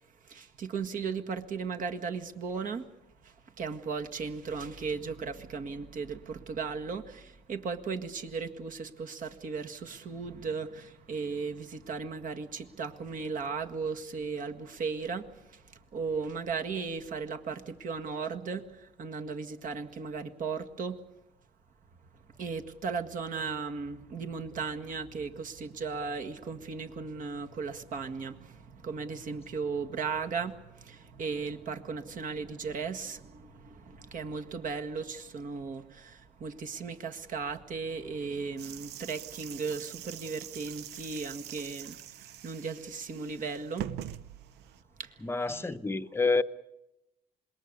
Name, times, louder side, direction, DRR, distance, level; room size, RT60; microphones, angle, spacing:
voice 1, 0.2-2.9 3.2-21.0 22.4-43.9 45.0-45.8, right 5 dB, 50° right, 1.9 m, -36 dB
sound 1, 38.6-44.8, right 11 dB, 80° right, 0.8 m, -44 dB
voice 2, 45.2-46.4, left 3 dB, 15° left, 0.9 m, -28 dB
26.5 x 21.0 x 6.7 m
cardioid pair, 110°, 17 cm